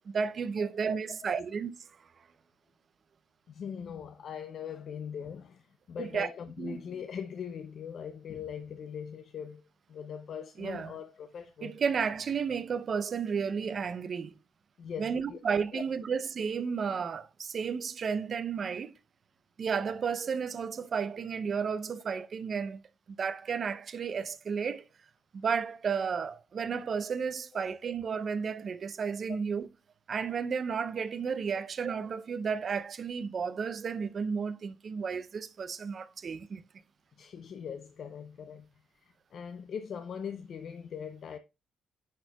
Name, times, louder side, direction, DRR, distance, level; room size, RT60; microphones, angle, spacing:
voice 1, 0.1-1.7 6.0-6.3 6.6-6.8 10.6-10.9 11.6-14.3 15.0-18.9 19.6-22.8 23.2-24.9 25.3-29.7 30.1-36.6, right 6 dB, 50° right, 0.5 m, -32 dB
voice 2, 1.2-1.5 3.5-9.6 9.9-11.8 14.8-15.4 15.7-15.8 27.5-27.7 37.2-38.7 39.0-41.4, left 7 dB, 60° left, 0.5 m, -41 dB
10.0 x 4.4 x 2.2 m
cardioid pair, 90°, 0 cm